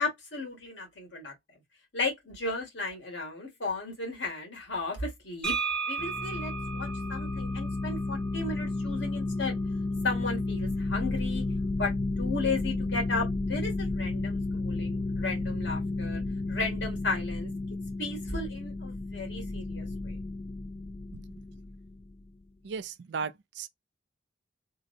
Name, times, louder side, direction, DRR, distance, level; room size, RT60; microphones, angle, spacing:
voice 1, 0.0-1.3 1.9-5.5 5.8-9.6 10.0-11.4 11.8-11.9 12.2-16.2 16.5-17.5 18.0-20.2, left 3 dB, 75° left, 1.9 m, -34 dB
sound 1, 5.4-9.2, right 5 dB, 5° left, 0.7 m, -36 dB
sound 2, 6.0-22.2, left 2 dB, 30° left, 0.3 m, -32 dB
voice 2, 22.6-23.7, right 5 dB, 70° right, 0.4 m, -36 dB
3.8 x 2.1 x 2.6 m
head